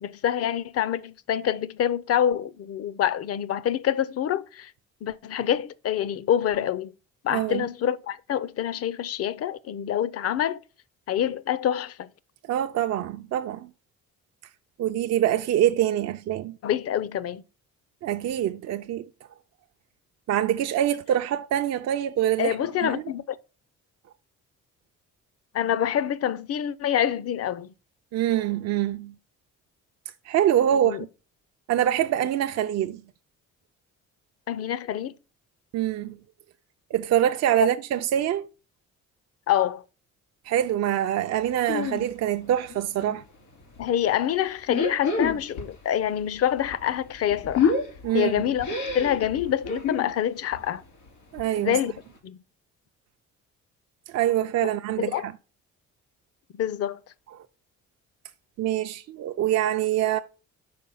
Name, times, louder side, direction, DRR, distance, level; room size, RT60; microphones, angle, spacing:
voice 1, 0.0-4.7 5.0-6.9 7.2-10.6 11.1-12.1 16.6-17.4 22.4-23.4 25.5-27.7 30.8-31.0 34.5-35.1 37.6-37.7 39.5-39.8 43.8-47.7 48.1-48.7 48.9-50.8 51.6-51.9 52.2-52.4 55.0-55.3 56.5-57.0, left 10 dB, 55° left, 0.5 m, -26 dB
voice 2, 7.3-7.6 12.5-13.7 14.8-16.6 18.0-19.1 20.3-22.5 22.8-23.0 28.1-29.1 30.3-31.0 31.7-33.0 35.7-36.2 36.9-38.5 40.5-43.2 48.0-48.3 51.3-51.8 54.1-55.3 58.6-60.2, right 11 dB, 60° right, 0.4 m, -25 dB
sound 1, 41.7-42.1 42.4-43.2 43.6-43.8 44.6-45.8 46.0-50.1 50.5-50.8 51.1-51.2 51.4-51.5 52.0-52.1, left 5 dB, 85° left, 3.3 m, -28 dB
5.2 x 4.1 x 5.4 m
cardioid pair, 90°, 30 cm